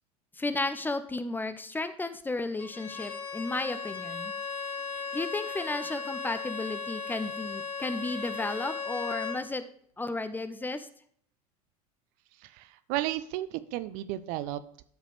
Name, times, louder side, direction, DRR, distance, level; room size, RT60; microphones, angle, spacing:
voice 1, 0.4-4.3 5.1-9.6 10.0-10.9, left 2 dB, 10° left, 11 dB, 0.7 m, -33 dB
Bowed string instrument, 2.6-9.4, left 5 dB, 65° left, 1.8 m, -36 dB
voice 2, 12.4-14.8, right 14 dB, 45° right, 14 dB, 0.5 m, -34 dB
13.0 x 4.9 x 3.3 m, 0.62 s
figure-of-eight pair, 80°, 20 cm